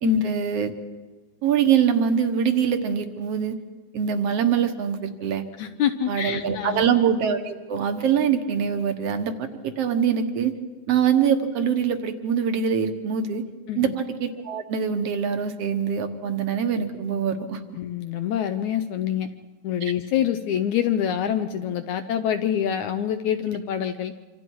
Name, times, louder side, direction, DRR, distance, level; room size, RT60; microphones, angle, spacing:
voice 1, 0.0-0.7 1.4-3.6 3.9-5.4 6.1-10.5 10.9-13.4 13.8-17.6, right 7 dB, 60° right, 7 dB, 1.7 m, -24 dB
voice 2, 5.6-7.0 13.7-13.9 17.8-19.3 19.6-24.1, left 9 dB, 75° left, 9 dB, 1.8 m, -26 dB
26.5 x 26.5 x 4.7 m, 1.3 s
omnidirectional pair, 4.1 m